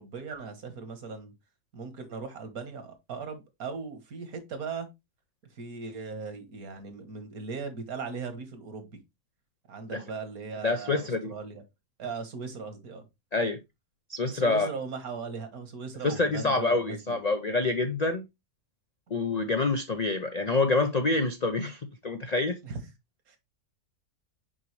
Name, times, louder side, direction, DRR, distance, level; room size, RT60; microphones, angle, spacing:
voice 1, 0.0-1.3 1.7-4.9 5.5-8.9 9.7-11.6 12.0-13.1 14.3-17.2 22.6-22.8 23.3-23.4, right 5 dB, 65° right, 1.7 m, -38 dB
voice 2, 10.6-11.3 13.3-13.6 14.1-14.7 16.0-18.2 19.1-22.6, left 3 dB, 65° left, 0.4 m, -27 dB
6.2 x 5.1 x 3.1 m
omnidirectional pair, 1.7 m